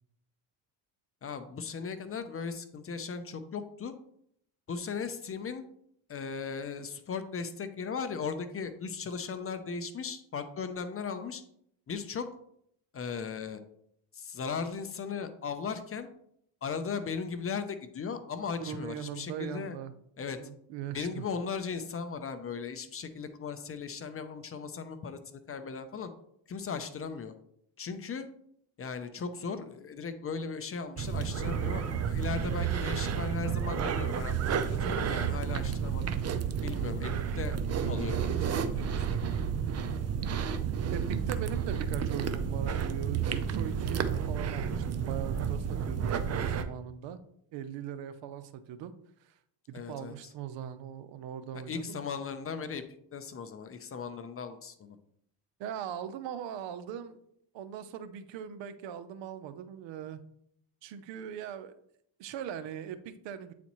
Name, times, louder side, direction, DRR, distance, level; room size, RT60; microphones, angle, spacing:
voice 1, 1.2-3.9 4.7-5.6 6.1-11.4 11.9-12.3 12.9-13.6 14.1-16.1 16.6-19.8 20.2-20.4 20.9-26.1 26.5-27.3 27.8-28.3 28.8-34.4 34.7-36.1 36.6-37.6 37.8-39.5 49.7-50.1 51.7-52.8 53.1-55.0, left 5 dB, 30° left, 10 dB, 0.6 m, -37 dB
voice 2, 18.6-19.9 20.4-21.2 39.7-40.0 40.9-47.2 47.5-48.9 49.2-49.3 49.7-52.0 55.6-57.2 57.5-60.2 60.8-61.7 62.2-63.5, right 9 dB, 70° right, 12 dB, 0.7 m, -40 dB
sound 1, 31.0-46.7, right 7 dB, 35° right, 0.5 m, -31 dB
8.3 x 4.1 x 3.0 m, 0.70 s
cardioid pair, 95°, 46 cm